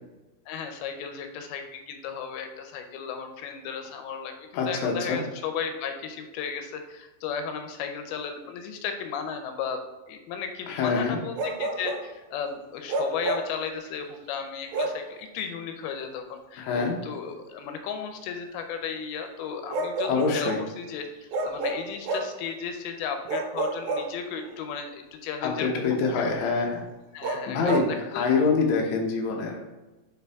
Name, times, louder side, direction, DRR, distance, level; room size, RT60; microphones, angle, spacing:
voice 1, 0.5-9.8 10.1-26.3 27.1-28.2, left 6 dB, 85° left, 6 dB, 2.6 m, -35 dB
voice 2, 4.5-5.2 10.7-11.2 16.6-17.0 20.1-20.6 25.4-26.8 27.5-29.6, left 4 dB, 70° left, 0 dB, 1.9 m, -25 dB
Bark, 11.4-12.1 12.9-13.6 14.7-15.1 16.8-16.9 19.7-20.7 21.3-22.4 23.3-24.5 27.2-27.9, right 2 dB, 80° right, 2.2 m, -30 dB
6.8 x 4.0 x 3.5 m, 1.1 s
omnidirectional pair, 4.4 m